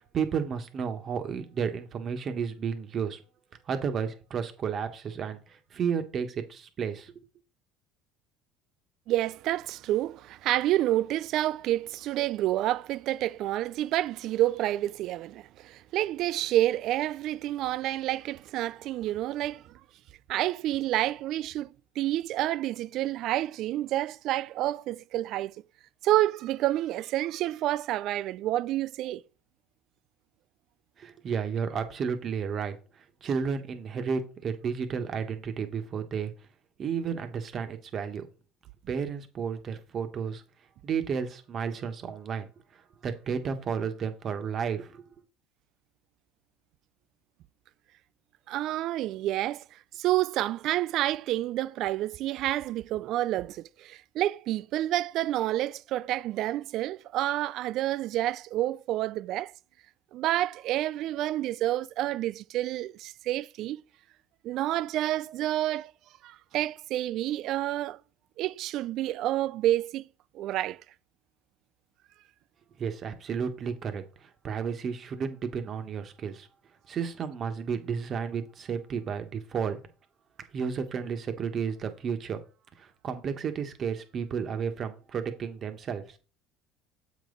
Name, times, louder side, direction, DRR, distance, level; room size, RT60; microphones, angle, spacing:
voice 1, 0.0-3.2 3.7-7.3 31.0-36.3 36.8-38.2 38.9-40.4 40.8-45.0 72.8-76.5 76.9-79.8 80.5-82.4 82.8-86.2, right 6 dB, 40° right, 1.3 m, -32 dB
voice 2, 9.1-19.6 20.3-21.7 22.0-25.5 26.0-29.2 48.5-59.5 60.1-63.8 64.4-65.9 66.2-68.0 68.4-70.1 70.3-70.8, right 14 dB, 60° right, 0.3 m, -29 dB
7.4 x 5.3 x 3.9 m
supercardioid pair, 100°, 0 cm